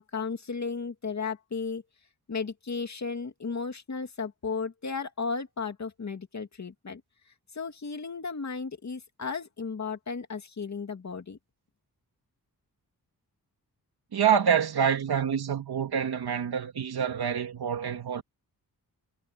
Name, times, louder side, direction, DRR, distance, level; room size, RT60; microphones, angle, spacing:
voice 1, 0.0-1.8 2.3-7.0 7.5-11.4, left 5 dB, 45° left, 2.5 m, -34 dB
voice 2, 14.1-18.2, right 8 dB, 85° right, 3.0 m, -26 dB
wide cardioid pair, 110°, 37 cm